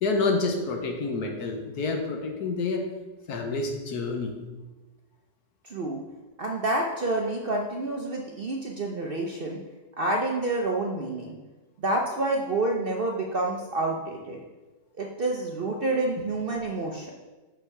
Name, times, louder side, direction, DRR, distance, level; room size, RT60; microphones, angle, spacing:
voice 1, 0.0-2.9 3.3-4.4 16.2-16.3, left 3 dB, 65° left, 3 dB, 1.3 m, -28 dB
voice 2, 5.6-6.0 6.4-9.6 10.0-11.4 11.8-14.4 15.0-17.1, right 2 dB, 60° right, 0 dB, 0.5 m, -28 dB
6.4 x 5.4 x 4.8 m, 1.2 s
omnidirectional pair, 1.8 m